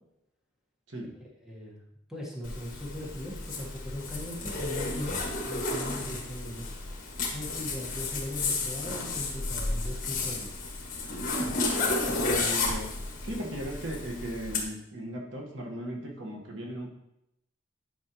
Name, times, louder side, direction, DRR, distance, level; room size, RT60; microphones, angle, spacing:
voice 1, 1.4-1.8 2.1-5.2 5.5-6.7 7.3-10.5, left 1 dB, ahead, -4 dB, 1.4 m, -39 dB
Zipper (clothing), 2.4-14.6, left 3 dB, 45° left, 1.6 m, -32 dB
voice 2, 12.0-12.9 13.2-16.9, equal, 70° right, 0 dB, 1.4 m, -37 dB
10.5 x 5.3 x 3.0 m, 0.85 s
head